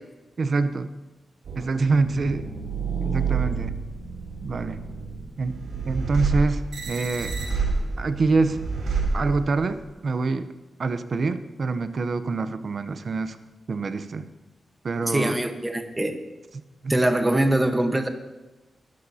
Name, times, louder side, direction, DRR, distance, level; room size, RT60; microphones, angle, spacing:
voice 1, 0.4-0.9 1.6-2.5 3.0-3.8 4.4-4.8 5.4-5.6 5.9-7.4 8.0-8.6 9.1-10.5 10.8-13.4 13.7-14.3 14.8-15.4 16.8-16.9, right 3 dB, 50° right, 11 dB, 0.7 m, -25 dB
sound 1, 1.4-9.8, right 4 dB, 85° right, 3.8 m, -29 dB
voice 2, 15.0-16.2 16.9-18.1, right 1 dB, 10° right, 6 dB, 1.1 m, -23 dB
21.5 x 13.0 x 2.8 m, 1.1 s
wide cardioid pair, 135°, 0 cm